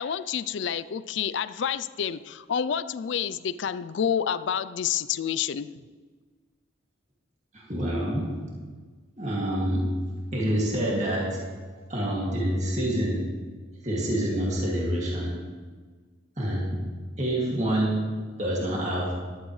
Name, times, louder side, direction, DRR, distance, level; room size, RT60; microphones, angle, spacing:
voice 1, 0.0-5.7, left 8 dB, 70° left, 14 dB, 0.4 m, -29 dB
voice 2, 7.5-8.5 9.2-11.5 11.9-13.3 13.8-15.4 16.4-16.9 17.2-19.2, right 1 dB, 35° right, -4 dB, 2.2 m, -27 dB
14.0 x 12.0 x 3.2 m, 1.4 s
head